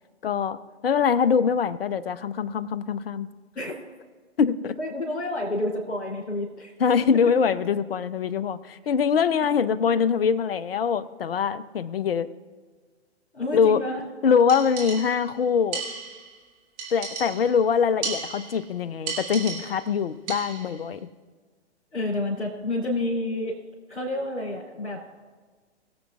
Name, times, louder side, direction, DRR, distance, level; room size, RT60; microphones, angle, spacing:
voice 1, 0.2-0.6 0.8-3.3 4.4-4.8 6.8-12.3 13.5-13.8 14.2-15.8 16.9-21.1, left 6 dB, 55° left, 17 dB, 0.6 m, -23 dB
voice 2, 4.8-6.7 7.1-7.3 9.4-9.5 13.3-14.1 21.9-23.6 23.9-25.0, left 1 dB, 75° left, -7 dB, 3.1 m, -29 dB
sound 1, 14.5-15.3 15.7-16.4 16.8-17.6 18.0-18.7 19.1-19.9 20.3-20.8, right 5 dB, 35° right, 3.0 m, -35 dB
22.0 x 8.0 x 2.4 m, 1.4 s
figure-of-eight pair, 120°, 34 cm